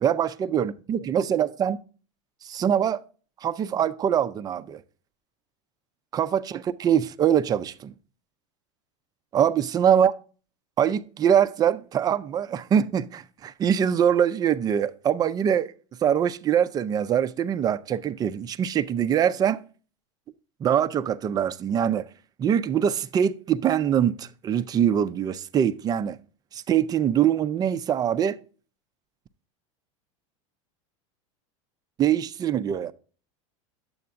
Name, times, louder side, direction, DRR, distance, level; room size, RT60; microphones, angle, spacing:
voice 1, 0.0-1.8 2.4-3.0 3.4-4.8 6.1-7.9 9.3-10.1 10.8-15.7 16.0-19.6 20.6-22.1 22.4-26.2 26.5-28.4 32.0-32.9, right 9 dB, 25° right, 0.4 m, -23 dB
9.3 x 7.8 x 2.4 m
supercardioid pair, 140°, 17 cm